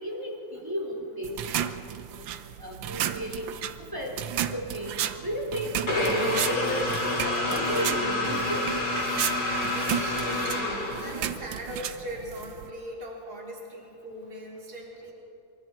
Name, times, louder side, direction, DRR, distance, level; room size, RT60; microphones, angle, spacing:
voice 1, 0.0-1.6 2.6-3.5 3.9-6.9 7.2-8.6, equal, 10° right, -1 dB, 3.2 m, -34 dB
sound 1, 1.2-12.7, right 10 dB, 80° right, 1.5 m, -34 dB
sound 2, 5.9-11.5, left 1 dB, 50° left, 4.3 m, -28 dB
voice 2, 9.4-10.6 10.9-15.1, right 1 dB, 50° right, -2 dB, 3.8 m, -40 dB
24.5 x 24.5 x 4.4 m, 2.7 s
omnidirectional pair, 2.1 m